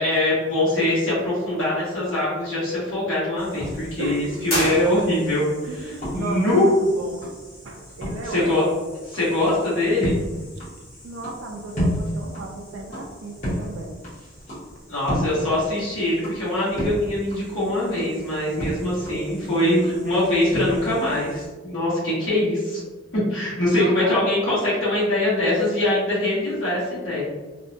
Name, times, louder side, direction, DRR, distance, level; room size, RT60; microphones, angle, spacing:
voice 1, 0.0-5.4 6.1-6.6 8.2-8.7 9.1-10.1 14.9-22.8 23.1-27.3, left 1 dB, 70° left, -9 dB, 1.3 m, -23 dB
sound 1, 3.4-21.5, equal, 35° left, 1.1 m, -33 dB
voice 2, 4.0-4.4 5.6-7.3 7.6-8.6 11.0-14.0 23.8-24.4, right 2 dB, 65° right, 0 dB, 0.3 m, -34 dB
sound 2, 4.5-5.5, equal, 85° left, 1.3 m, -27 dB
2.8 x 2.2 x 2.6 m, 1.2 s
head